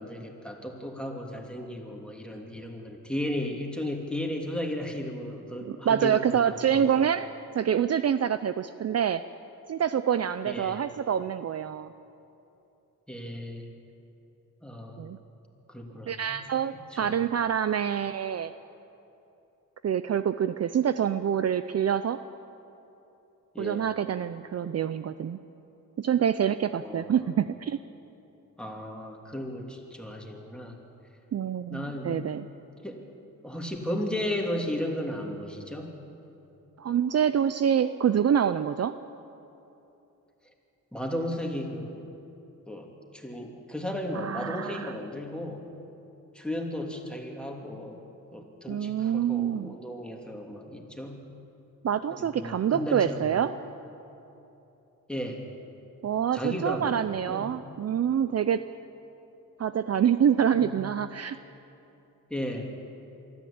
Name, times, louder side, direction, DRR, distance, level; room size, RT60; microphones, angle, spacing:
voice 1, 0.0-7.1 10.4-10.9 13.1-13.7 14.6-15.2 15.7-16.4 16.7-17.2 23.5-23.8 26.8-27.4 28.6-30.7 31.7-32.3 32.8-33.0 33.4-36.0 40.9-42.1 42.7-45.6 46.3-48.0 48.3-51.3 52.1-53.4 55.1-55.4 56.3-57.6 60.5-60.9 62.3-62.7, left 1 dB, 5° left, 0 dB, 3.0 m, -35 dB
voice 2, 5.7-7.3 7.5-9.2 9.7-11.9 15.0-15.2 16.1-18.5 19.8-22.2 23.6-25.4 26.0-27.8 31.3-32.4 36.8-38.9 44.1-44.9 48.7-49.8 51.8-53.5 56.0-58.6 59.6-61.4, right 8 dB, 50° right, 12 dB, 0.5 m, -26 dB
23.5 x 14.0 x 8.7 m, 2.9 s
cardioid pair, 90°, 33 cm